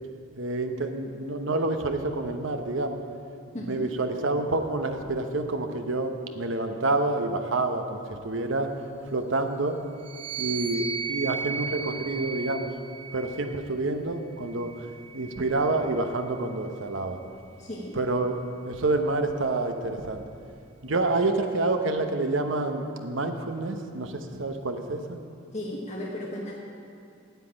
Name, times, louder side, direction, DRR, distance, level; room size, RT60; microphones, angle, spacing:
voice 1, 0.4-3.0 3.6-8.7 9.1-9.8 10.3-12.7 13.1-14.9 15.1-17.2 18.0-18.4 18.6-20.2 20.8-25.2, right 2 dB, 70° right, 6 dB, 0.9 m, -28 dB
voice 2, 3.5-3.9 17.6-18.0 25.5-26.5, left 1 dB, 35° left, -2 dB, 1.1 m, -35 dB
sound 1, 10.0-13.6 14.4-16.0, right 5 dB, 30° right, 0.6 m, -36 dB
9.2 x 8.2 x 8.8 m, 2.4 s
head